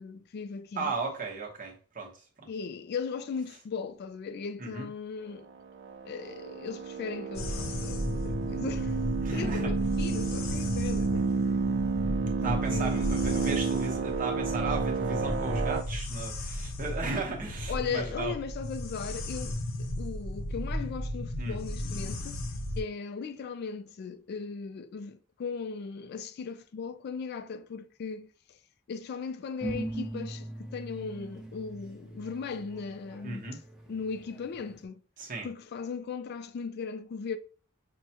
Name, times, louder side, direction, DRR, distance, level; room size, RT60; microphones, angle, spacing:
voice 1, 0.0-0.9 2.5-5.5 6.0-11.3 12.4-13.2 17.7-22.4 22.8-28.3 28.9-33.5 33.9-35.0 35.4-37.4, left 5 dB, 50° left, 0.3 m, -38 dB
voice 2, 0.8-2.5 4.6-4.9 9.2-9.7 12.4-18.3 21.4-21.6 33.2-33.6 35.2-35.5, right 3 dB, 40° right, 0.9 m, -35 dB
sound 1, 5.8-15.8, right 5 dB, 60° right, 0.4 m, -31 dB
sound 2, 7.3-22.8, left 1 dB, 75° left, 0.7 m, -34 dB
sound 3, 29.6-34.8, right 2 dB, 5° right, 0.7 m, -40 dB
6.0 x 2.1 x 2.8 m
head